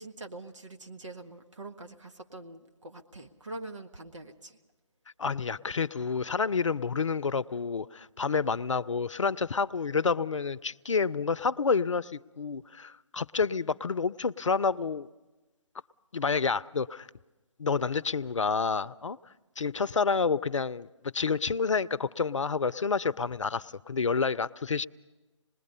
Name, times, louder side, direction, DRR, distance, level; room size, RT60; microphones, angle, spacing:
voice 1, 0.0-4.6, right 2 dB, 75° right, 5 dB, 1.6 m, -44 dB
voice 2, 5.2-15.1 16.1-17.1 17.6-19.2 19.6-20.9 21.1-24.9, left 5 dB, 80° left, 17 dB, 0.6 m, -29 dB
26.5 x 20.5 x 5.5 m, 1.1 s
figure-of-eight pair, 145°, 16 cm